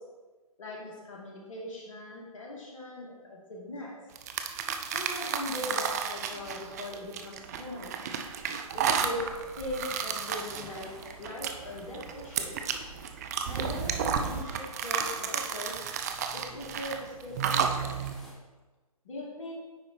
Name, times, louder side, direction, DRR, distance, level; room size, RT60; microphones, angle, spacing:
voice 1, 0.6-4.0 4.9-8.0 8.7-10.9 11.2-12.5 13.5-15.8 16.3-18.0 19.0-19.5, left 1 dB, 55° left, -3 dB, 2.2 m, -40 dB
sound 1, 4.2-18.2, right 7 dB, 25° right, 0.4 m, -32 dB
sound 2, 8.1-18.3, left 1 dB, 5° left, 1.1 m, -54 dB
9.4 x 3.9 x 4.1 m, 1.3 s
figure-of-eight pair, 135°, 19 cm